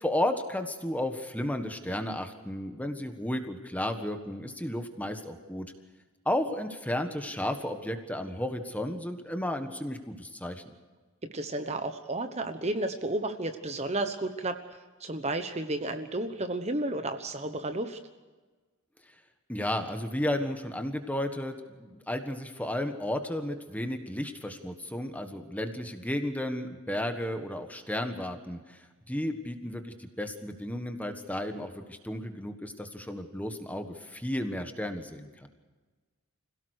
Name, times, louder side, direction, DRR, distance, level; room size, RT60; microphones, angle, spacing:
voice 1, 0.0-5.7 6.2-10.7 19.5-35.5, left 1 dB, 5° left, 6 dB, 1.4 m, -33 dB
voice 2, 11.3-14.6 15.0-18.0, right 2 dB, 30° right, 8 dB, 1.1 m, -32 dB
26.0 x 17.0 x 6.5 m, 1.3 s
head